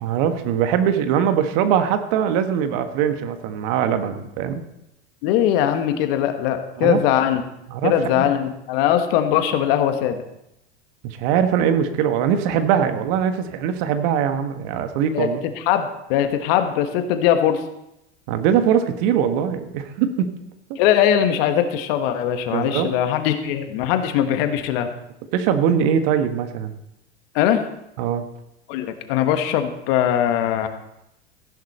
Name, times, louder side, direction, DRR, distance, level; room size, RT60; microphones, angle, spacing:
voice 1, 0.0-4.6 6.8-7.0 7.7-8.3 11.0-15.4 18.3-20.4 22.5-22.9 25.3-26.8 28.0-28.3, right 8 dB, 55° right, 8 dB, 1.5 m, -21 dB
voice 2, 5.2-7.4 7.8-10.2 15.1-15.3 15.6-17.6 20.7-24.9 27.3-27.6 28.7-30.7, left 10 dB, 55° left, 7 dB, 1.6 m, -20 dB
15.5 x 11.0 x 4.3 m, 0.85 s
hypercardioid pair, 90°, 33 cm